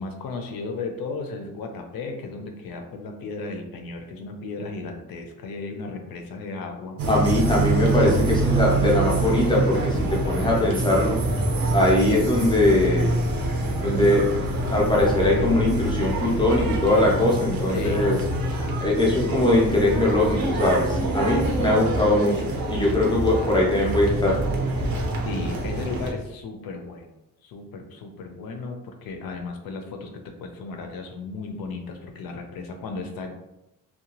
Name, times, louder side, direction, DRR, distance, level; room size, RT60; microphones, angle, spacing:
voice 1, 0.0-7.0 17.7-18.2 25.2-27.1 27.4-30.1 30.4-33.3, left 3 dB, 75° left, 4 dB, 0.6 m, -35 dB
sound 1, 7.0-26.1, right 2 dB, 85° right, 0.7 m, -25 dB
voice 2, 7.1-11.2 11.7-13.2 13.8-14.2 14.7-18.2 18.5-24.4, left 1 dB, 15° left, -3 dB, 0.5 m, -21 dB
2.7 x 2.2 x 2.8 m, 0.90 s
wide cardioid pair, 175°, 35 cm